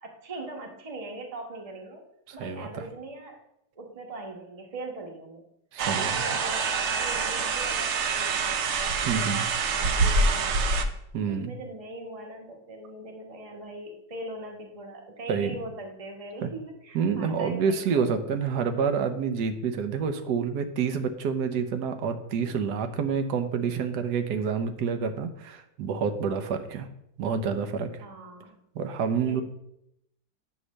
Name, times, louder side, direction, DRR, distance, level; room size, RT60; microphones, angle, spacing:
voice 1, 0.0-2.0 2.3-3.4 3.8-5.4 5.9-10.9 11.3-18.3 28.0-28.6 29.0-29.4, right 2 dB, 25° right, 2 dB, 0.9 m, -41 dB
voice 2, 2.3-2.8 5.7-6.2 9.1-9.5 11.1-11.5 15.3-15.6 16.4-16.5 16.9-26.9 27.2-28.0 28.7-29.4, right 6 dB, 70° right, 8 dB, 1.3 m, -28 dB
sound 1, 5.8-10.8, right 4 dB, 90° right, 0.6 m, -26 dB
9.7 x 3.2 x 6.3 m, 0.80 s
omnidirectional pair, 2.0 m